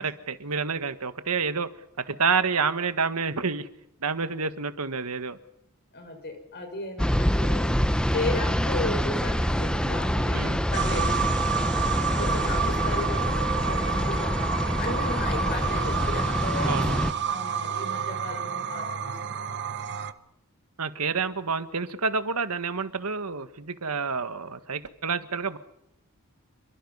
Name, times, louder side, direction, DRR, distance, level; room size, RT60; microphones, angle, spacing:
voice 1, 0.0-1.7 2.0-3.7 4.0-5.4 10.3-10.6 16.6-17.1 20.8-25.6, right 5 dB, 85° right, 11 dB, 1.6 m, -28 dB
voice 2, 5.9-7.8 8.1-11.1 11.9-16.8 17.3-19.4, left 2 dB, 50° left, 6 dB, 5.9 m, -35 dB
sound 1, 7.0-17.1, equal, 5° left, 0.9 m, -26 dB
sound 2, 10.7-20.1, right 6 dB, 55° right, 1.1 m, -30 dB
28.5 x 23.0 x 5.6 m, 0.79 s
head